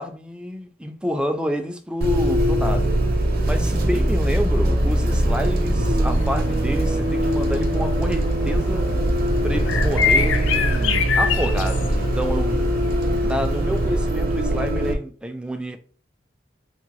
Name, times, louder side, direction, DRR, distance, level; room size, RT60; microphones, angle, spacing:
voice 1, 0.0-3.0 3.4-8.9 9.4-12.7 13.2-15.8, equal, 5° right, 0.3 m, -28 dB
Bus, 2.0-14.9, right 1 dB, 55° right, 0.6 m, -21 dB
sound 1, 6.1-14.5, left 6 dB, 85° left, 0.4 m, -28 dB
3.6 x 2.0 x 3.0 m
head